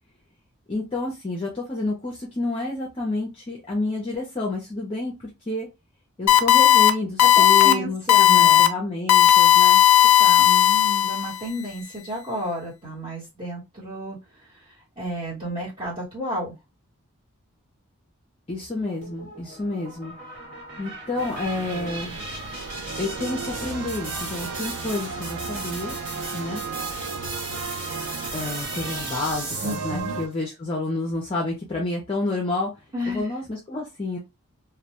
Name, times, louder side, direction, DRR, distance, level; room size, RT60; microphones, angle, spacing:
voice 1, 0.7-5.7 6.2-9.8 18.5-20.1 20.8-22.2 23.0-26.0 26.3-26.6 28.3-34.2, left 2 dB, 25° left, -2 dB, 0.5 m, -29 dB
sound 1, 6.3-6.9 7.2-7.7 8.1-8.7 9.1-11.4, left 11 dB, 85° left, 0.3 m, -15 dB
voice 2, 7.2-8.7 10.2-16.6 29.6-30.2 32.9-33.3, right 1 dB, 25° right, -10 dB, 1.0 m, -32 dB
sound 2, 19.0-30.1, right 2 dB, 50° right, 1.2 m, -36 dB
sound 3, 21.2-30.3, right 5 dB, 80° right, 0.4 m, -35 dB
2.1 x 2.1 x 2.8 m, 0.24 s
head